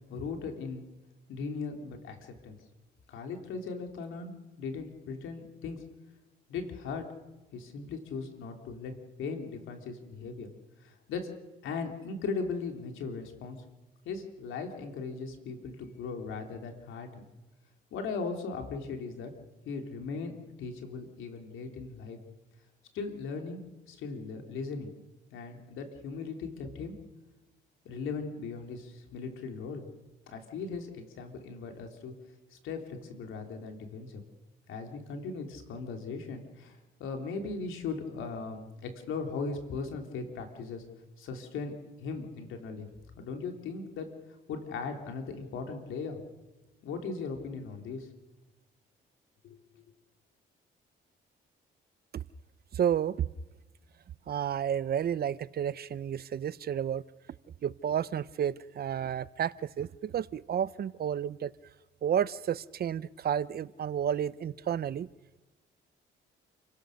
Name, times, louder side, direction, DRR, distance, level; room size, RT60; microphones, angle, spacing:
voice 1, 0.1-0.8 1.3-2.6 3.1-5.8 6.5-7.1 7.5-8.9 9.2-10.5 10.8-11.3 11.6-13.6 14.1-17.2 17.9-19.3 19.7-20.3 20.6-22.2 22.9-23.6 23.9-24.9 25.3-26.9 27.9-29.8 30.3-32.1 32.5-34.2 34.7-40.8 41.2-41.7 42.0-42.9 43.2-44.1 44.5-46.2 46.8-48.1 49.4-49.6, left 4 dB, 85° left, 4 dB, 3.4 m, -38 dB
voice 2, 52.7-53.3 54.3-57.0 57.6-61.5 62.0-65.1, right 9 dB, 50° right, 18 dB, 0.7 m, -31 dB
29.0 x 17.0 x 6.6 m, 1.1 s
cardioid pair, 90°, 20 cm